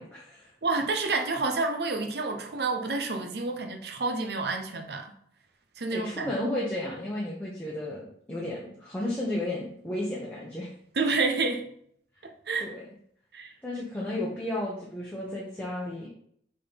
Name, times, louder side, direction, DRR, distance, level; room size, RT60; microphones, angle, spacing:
voice 1, 0.0-0.5 5.9-10.7 12.6-12.8 13.6-16.1, left 1 dB, 10° left, -6 dB, 1.0 m, -33 dB
voice 2, 0.6-5.1 5.8-6.3 10.9-11.7 12.2-12.7 13.3-13.5, right 3 dB, 70° right, 5 dB, 0.8 m, -29 dB
6.5 x 3.9 x 4.0 m, 0.65 s
head